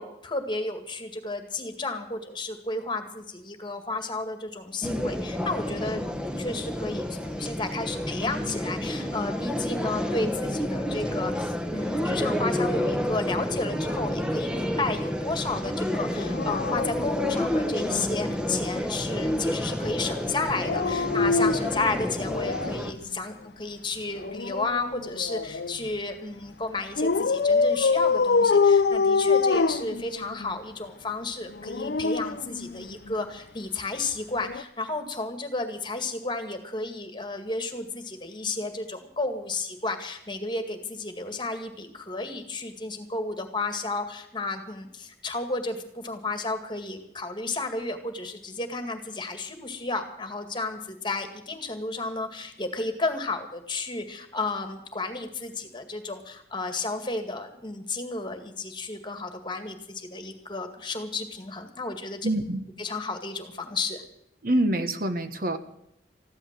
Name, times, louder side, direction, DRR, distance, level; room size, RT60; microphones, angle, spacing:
voice 1, 0.0-6.0 6.3-62.3 62.8-64.0, left 3 dB, 25° left, 7 dB, 2.0 m, -32 dB
sound 1, 4.8-22.9, left 1 dB, 5° right, 1.2 m, -29 dB
Dog, 16.2-18.0 20.5-22.9 24.1-25.8 27.0-30.5 31.5-33.1 34.4-34.6, left 4 dB, 65° left, 0.5 m, -25 dB
voice 2, 62.2-62.6 64.4-65.6, right 1 dB, 55° right, 8 dB, 1.3 m, -25 dB
15.0 x 11.5 x 7.5 m, 0.76 s
head